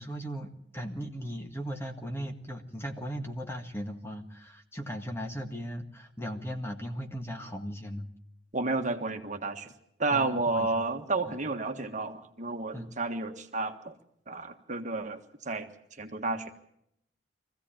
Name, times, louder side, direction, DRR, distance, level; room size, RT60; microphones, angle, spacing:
voice 1, 0.0-8.1 10.1-10.7 11.3-11.4 12.7-12.9, equal, 15° left, 4 dB, 1.8 m, -37 dB
voice 2, 8.5-9.7 10.0-13.9 14.3-15.2 15.4-15.7 16.0-16.5, right 3 dB, 45° right, 5 dB, 1.5 m, -31 dB
24.0 x 15.5 x 8.8 m, 0.76 s
head